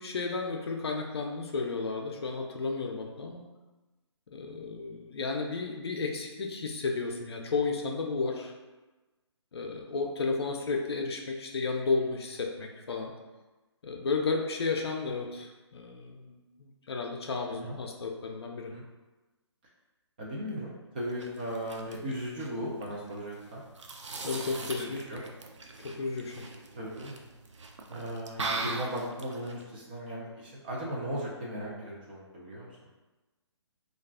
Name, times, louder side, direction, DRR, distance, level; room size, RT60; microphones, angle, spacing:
voice 1, 0.0-3.4 4.3-8.5 9.5-13.1 13.8-18.7 24.2-25.0 25.8-26.5, left 4 dB, 60° left, 2 dB, 0.5 m, -33 dB
voice 2, 20.2-23.6 24.4-25.2 26.8-27.2 27.9-32.7, equal, 20° right, -3 dB, 0.3 m, -37 dB
sound 1, 21.0-29.6, right 3 dB, 85° right, 0.4 m, -41 dB
2.4 x 2.3 x 3.4 m, 1.2 s
figure-of-eight pair, 150°, 15 cm